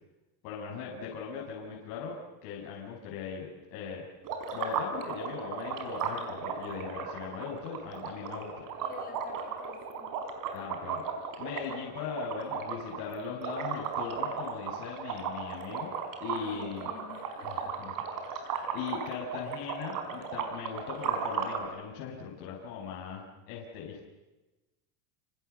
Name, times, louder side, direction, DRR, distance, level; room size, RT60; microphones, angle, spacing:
voice 1, 0.4-2.2 2.4-4.1 4.5-8.7 10.5-11.0 11.4-15.9 16.2-16.9 17.5-17.6 17.8-17.9 18.4-24.0, left 6 dB, 75° left, -3 dB, 7.1 m, -39 dB
sound 1, 4.2-21.7, right 6 dB, 40° right, 4.9 m, -36 dB
voice 2, 8.8-10.1 16.2-17.9, left 5 dB, 20° left, 2 dB, 6.9 m, -49 dB
30.0 x 27.5 x 7.0 m, 1.1 s
cardioid pair, 170°, 48 cm